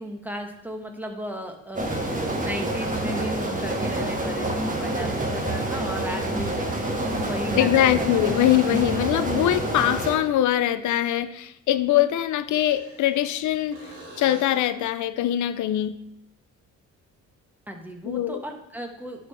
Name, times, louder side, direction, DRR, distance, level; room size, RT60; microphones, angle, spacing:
voice 1, 0.0-6.6 7.2-8.3 17.7-19.3, equal, 5° right, 3 dB, 1.3 m, -35 dB
sound 1, 1.7-10.2, right 1 dB, 25° right, 1.7 m, -27 dB
voice 2, 7.5-13.8 14.2-15.9 18.0-18.4, left 12 dB, 75° left, 12 dB, 0.6 m, -22 dB
sound 2, 8.1-9.2 12.4-13.4 13.7-14.8 18.4-18.5, right 2 dB, 80° right, 3.3 m, -46 dB
11.0 x 5.5 x 3.3 m, 0.80 s
cardioid pair, 90°, 30 cm